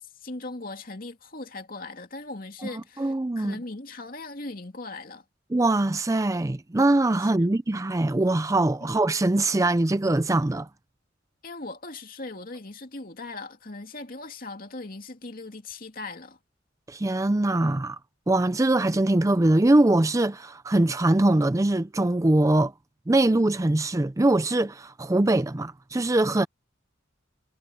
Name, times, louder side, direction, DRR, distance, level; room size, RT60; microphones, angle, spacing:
voice 1, 0.0-5.2 7.2-7.5 8.8-8.9 11.4-16.4, left 2 dB, 50° left, 2.6 m, -39 dB
voice 2, 2.7-3.5 5.5-10.7 16.9-18.0 18.3-22.7 23.1-26.5, right 2 dB, 15° right, 0.5 m, -22 dB
head